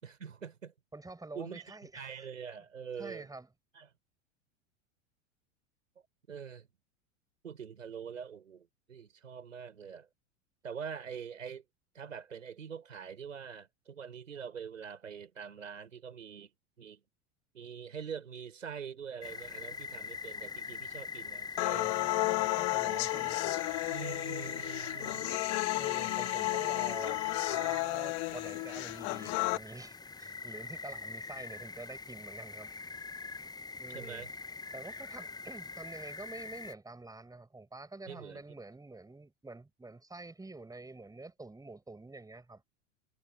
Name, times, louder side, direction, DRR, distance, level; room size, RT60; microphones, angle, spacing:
voice 1, 0.0-0.7 1.3-3.3 3.7-3.9 6.3-6.7 7.4-10.1 10.6-11.6 11.9-16.5 16.8-17.0 17.5-21.9 23.9-25.3 33.9-34.3 38.1-38.4, right 7 dB, 90° right, 5.8 m, -44 dB
voice 2, 0.9-2.3 3.0-3.5 21.7-23.6 25.7-27.2 27.5-32.7 33.8-34.3 34.7-42.6, right 2 dB, 10° right, 6.3 m, -47 dB
sound 1, 19.2-36.7, left 5 dB, 10° left, 0.8 m, -43 dB
sound 2, 21.6-29.6, left 29 dB, 55° left, 2.0 m, -33 dB
hypercardioid pair, 95°, 38 cm